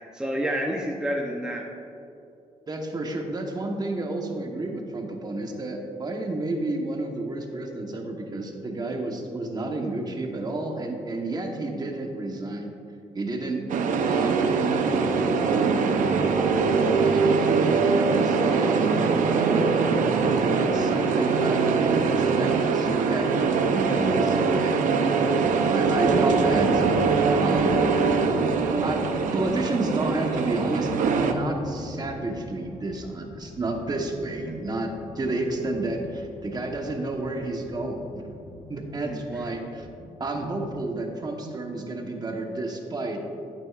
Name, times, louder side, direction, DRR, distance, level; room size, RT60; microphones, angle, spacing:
voice 1, 0.0-1.7 34.5-34.6 39.0-39.4, equal, 5° right, -1 dB, 0.7 m, -29 dB
voice 2, 2.7-12.7 13.1-13.6 14.0-15.8 16.3-19.9 20.4-24.7 25.7-26.8 27.4-27.8 28.8-38.2 38.7-39.9 40.2-43.2, right 2 dB, 30° right, 2 dB, 1.1 m, -31 dB
sound 1, 13.7-31.3, right 5 dB, 80° right, 0.6 m, -22 dB
sound 2, 25.8-40.9, left 3 dB, 55° left, 0.8 m, -39 dB
11.0 x 8.8 x 2.4 m, 2.7 s
cardioid pair, 105°, 13 cm